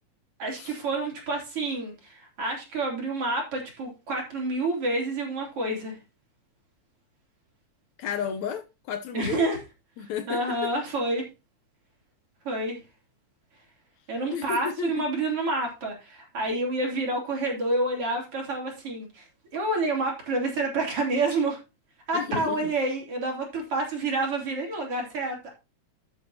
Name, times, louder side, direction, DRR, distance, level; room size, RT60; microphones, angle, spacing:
voice 1, 0.4-6.0 9.1-9.6 10.0-11.3 12.5-12.8 14.1-19.3 19.5-21.6 22.1-25.5, right 2 dB, 45° right, 4.0 m, -28 dB
voice 2, 8.0-9.5 10.0-10.7 14.3-14.9 22.1-22.7, left 7 dB, 75° left, 2.0 m, -33 dB
12.5 x 7.8 x 2.8 m
omnidirectional pair, 3.6 m